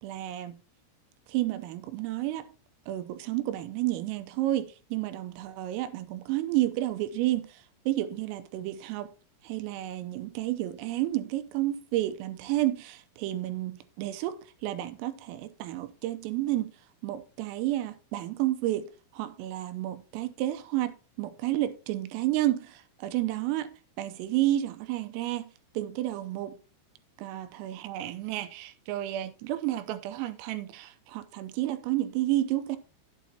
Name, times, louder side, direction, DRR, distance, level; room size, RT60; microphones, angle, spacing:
voice 1, 0.0-0.6 1.3-2.5 2.9-7.6 7.9-9.1 9.4-16.7 17.0-25.5 25.8-26.6 27.2-32.8, right 14 dB, 90° right, 3.4 m, -31 dB
11.5 x 8.2 x 2.9 m
omnidirectional pair, 6.0 m